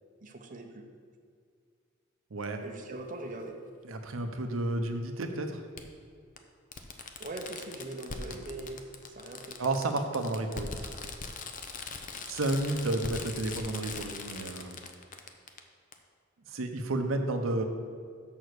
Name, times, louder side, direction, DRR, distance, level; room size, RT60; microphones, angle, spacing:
voice 1, 0.2-0.9 2.6-3.6 7.2-9.6 17.5-17.6, right 2 dB, 40° right, 2 dB, 0.7 m, -41 dB
voice 2, 2.3-2.6 3.8-5.6 9.6-11.0 12.3-14.8 16.5-17.6, right 2 dB, 85° right, 5 dB, 0.7 m, -31 dB
Fireworks, 2.4-2.5 4.1-4.2 5.8-5.9 6.4-6.5 6.7-15.6 15.9-16.0, left 4 dB, 40° left, 0.6 m, -41 dB
6.4 x 5.6 x 6.5 m, 2.2 s
head